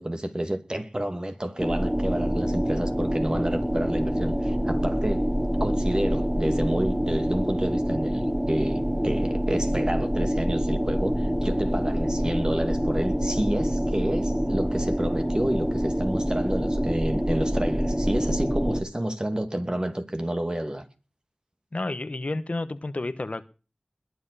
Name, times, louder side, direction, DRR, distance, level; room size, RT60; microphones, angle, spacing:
voice 1, 0.0-20.8, right 1 dB, 30° right, 2.4 m, -30 dB
sound 1, 1.6-18.8, equal, 10° right, 2.8 m, -26 dB
voice 2, 21.7-23.4, left 2 dB, 55° left, 1.1 m, -30 dB
21.0 x 8.1 x 6.8 m
wide cardioid pair, 50°, 3 cm